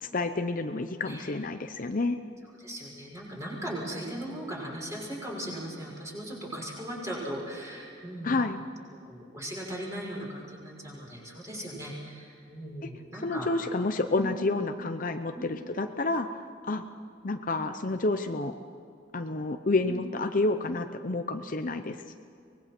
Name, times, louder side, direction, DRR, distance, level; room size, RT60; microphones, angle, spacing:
voice 1, 0.0-2.2 8.2-8.6 12.8-12.9 13.2-16.9 17.2-18.6 19.1-22.1, left 2 dB, 45° left, 7 dB, 0.7 m, -29 dB
voice 2, 2.6-8.4 9.1-13.5 14.2-14.6 15.3-15.5 19.9-20.0, right 1 dB, 15° right, -3 dB, 6.0 m, -38 dB
24.0 x 20.5 x 6.0 m, 2.6 s
head